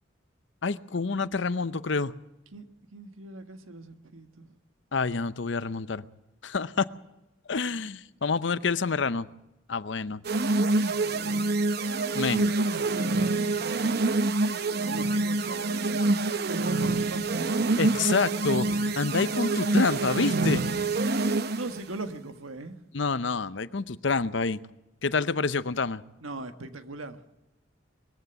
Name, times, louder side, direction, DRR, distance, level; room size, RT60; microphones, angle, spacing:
voice 1, 0.6-2.1 4.9-6.1 6.4-6.9 7.5-9.3 9.7-10.2 12.1-12.5 17.8-20.6 22.9-24.6 25.0-26.0, left 4 dB, 60° left, 15 dB, 0.7 m, -28 dB
voice 2, 2.9-4.5 12.1-12.8 13.1-14.1 14.8-18.2 21.6-22.8 26.2-27.2, right 2 dB, 85° right, 8 dB, 1.6 m, -40 dB
sound 1, 10.2-21.8, right 2 dB, 50° right, 0.8 m, -26 dB
21.5 x 15.0 x 8.0 m, 0.95 s
head